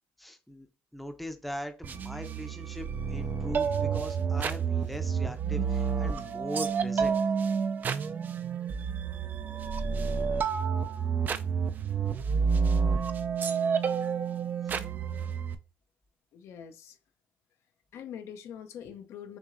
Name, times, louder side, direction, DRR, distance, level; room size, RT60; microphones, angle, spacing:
voice 1, 0.2-0.7 0.9-7.2 14.6-14.8, equal, ahead, 0.6 m, -40 dB
sound 1, 1.8-15.5, right 6 dB, 35° right, 0.4 m, -29 dB
voice 2, 16.3-17.0 17.9-19.4, left 8 dB, 65° left, 0.6 m, -43 dB
6.1 x 2.7 x 2.5 m
cardioid pair, 105°, 5 cm